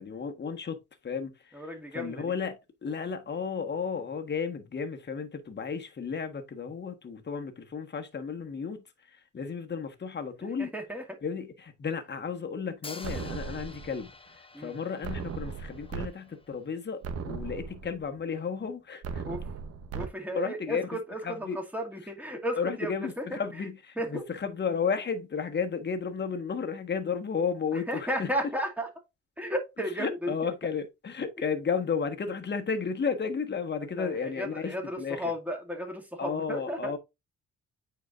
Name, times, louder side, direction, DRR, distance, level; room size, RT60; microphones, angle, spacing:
voice 1, 0.0-1.6 1.9-2.6 2.8-10.7 11.2-14.1 14.6-19.2 20.3-20.8 21.2-21.6 22.6-28.3 30.0-35.3 36.2-37.0, left 6 dB, 35° left, 1.4 m, -33 dB
voice 2, 1.5-2.3 10.6-11.2 14.5-14.8 19.3-19.5 19.9-23.2 24.0-24.2 27.7-28.9 29.4-30.3 33.7-36.9, equal, 5° right, 2.3 m, -34 dB
Hi-hat, 12.8-16.8, left 3 dB, 20° left, 1.0 m, -49 dB
sound 1, 13.0-14.0 15.0-16.1 16.5-16.6 17.0-18.0 19.0-20.1, right 6 dB, 55° right, 1.1 m, -37 dB
8.9 x 4.6 x 2.5 m
cardioid pair, 90°, 30 cm